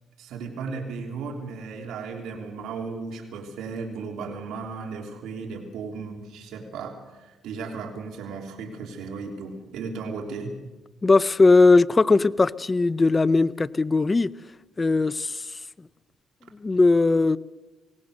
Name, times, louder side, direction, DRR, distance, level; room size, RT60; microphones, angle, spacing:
voice 1, 0.2-10.5, right 4 dB, 80° right, 3.3 m, -35 dB
voice 2, 11.0-14.3 14.8-15.6 16.6-17.4, left 3 dB, 25° left, 0.6 m, -19 dB
22.5 x 18.5 x 6.6 m
cardioid pair, 90°, 0 cm